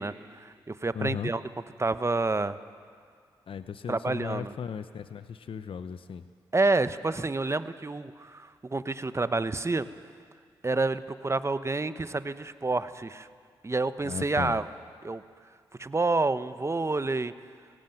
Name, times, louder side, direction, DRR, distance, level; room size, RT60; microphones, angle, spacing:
voice 1, 0.0-1.4 1.8-2.6 3.9-4.5 6.5-9.9 10.6-13.3 13.6-14.6 15.0-15.2 15.8-17.3, right 3 dB, 30° right, 13 dB, 1.0 m, -28 dB
voice 2, 0.9-1.3 3.5-6.2 14.0-14.6, left 7 dB, 65° left, 11 dB, 0.8 m, -36 dB
18.5 x 17.0 x 9.1 m, 2.1 s
supercardioid pair, 45°, 10 cm